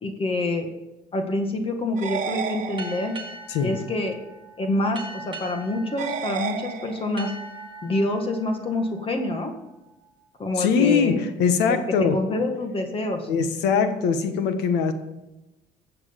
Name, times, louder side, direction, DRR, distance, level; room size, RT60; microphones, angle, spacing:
voice 1, 0.0-0.7 1.1-3.2 3.6-4.2 4.6-7.3 7.8-9.5 10.4-11.2 11.7-11.8 12.1-13.3, left 2 dB, 35° left, 4 dB, 1.7 m, -26 dB
sound 1, 2.0-3.4 6.0-7.4, right 7 dB, 50° right, 1.2 m, -32 dB
sound 2, 2.8-10.1, right 3 dB, 30° right, 1.6 m, -41 dB
voice 2, 10.6-12.2 13.3-14.9, left 6 dB, 85° left, 8 dB, 1.5 m, -22 dB
13.5 x 7.7 x 5.2 m, 1.0 s
cardioid pair, 110°, 17 cm